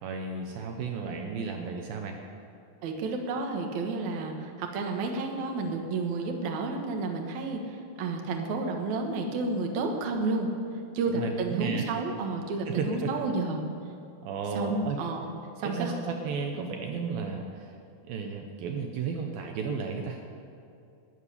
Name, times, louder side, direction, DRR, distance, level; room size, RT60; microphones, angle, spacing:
voice 1, 0.0-2.2 11.1-11.9 12.7-13.1 14.2-15.0 15.6-17.7 18.0-20.2, right 5 dB, 75° right, 3 dB, 2.5 m, -33 dB
voice 2, 2.8-10.5 10.9-13.6 14.6-15.3 15.6-15.9, right 3 dB, 60° right, 2 dB, 2.3 m, -31 dB
13.0 x 7.4 x 9.9 m, 2.6 s
omnidirectional pair, 4.4 m